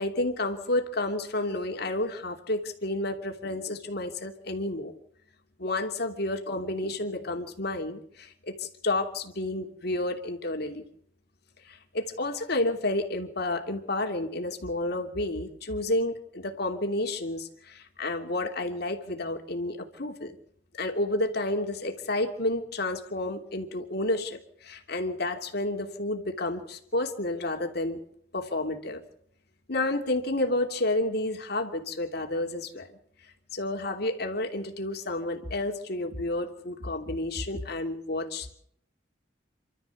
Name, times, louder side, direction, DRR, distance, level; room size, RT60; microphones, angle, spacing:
voice 1, 0.0-4.9 5.6-10.8 11.6-20.4 20.7-28.0 28.3-29.0 29.7-32.9 33.5-38.5, left 2 dB, 55° left, 3 dB, 3.0 m, -30 dB
29.0 x 13.0 x 7.3 m, 0.69 s
head